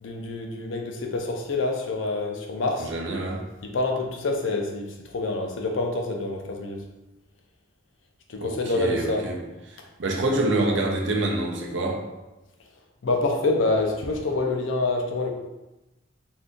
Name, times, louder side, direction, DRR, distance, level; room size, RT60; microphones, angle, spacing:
voice 1, 0.0-2.9 3.6-6.8 8.3-9.3 13.0-15.3, left 2 dB, 75° left, 2 dB, 0.5 m, -26 dB
voice 2, 2.8-3.4 8.4-9.3 10.0-12.0, right 2 dB, 65° right, 0 dB, 0.5 m, -26 dB
2.7 x 2.5 x 3.6 m, 1.0 s
head